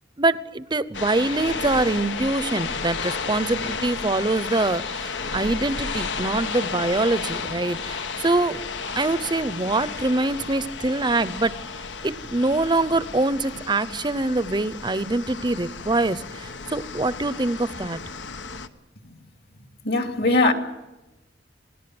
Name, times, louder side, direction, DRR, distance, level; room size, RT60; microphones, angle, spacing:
voice 1, 0.2-8.6 8.9-11.6 12.0-18.0, right 2 dB, 25° right, 0.8 m, -24 dB
sound 1, 0.9-18.7, left 5 dB, 85° left, 1.4 m, -33 dB
voice 2, 19.8-20.5, left 2 dB, 60° left, 2.7 m, -20 dB
27.5 x 18.0 x 7.9 m
head